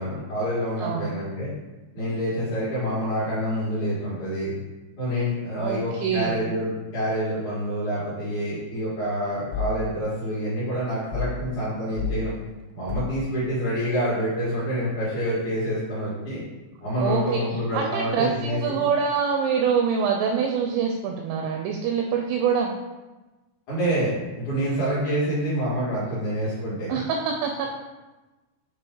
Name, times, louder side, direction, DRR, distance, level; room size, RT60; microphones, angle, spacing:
voice 1, 0.0-1.5 1.9-4.5 5.0-12.3 12.7-16.4 16.8-18.6 23.7-26.9, equal, 50° left, -10 dB, 2.4 m, -27 dB
voice 2, 0.8-1.1 5.6-6.4 17.0-17.4 17.7-22.7 26.9-27.7, right 6 dB, 85° right, 2 dB, 2.6 m, -25 dB
sound 1, 9.5-9.8 11.1-11.4 12.0-12.2 12.9-13.2, left 5 dB, 85° left, 3.3 m, -29 dB
7.7 x 3.5 x 4.5 m, 1.2 s
omnidirectional pair, 5.7 m